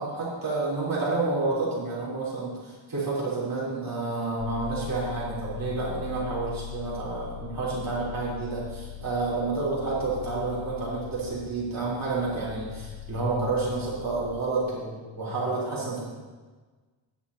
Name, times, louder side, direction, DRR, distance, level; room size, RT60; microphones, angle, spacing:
voice 1, 0.0-16.1, right 3 dB, 45° right, -7 dB, 3.8 m, -29 dB
sound 1, 4.4-14.4, left 12 dB, 55° left, 0.7 m, -40 dB
14.0 x 9.9 x 2.9 m, 1.3 s
wide cardioid pair, 160°, 48 cm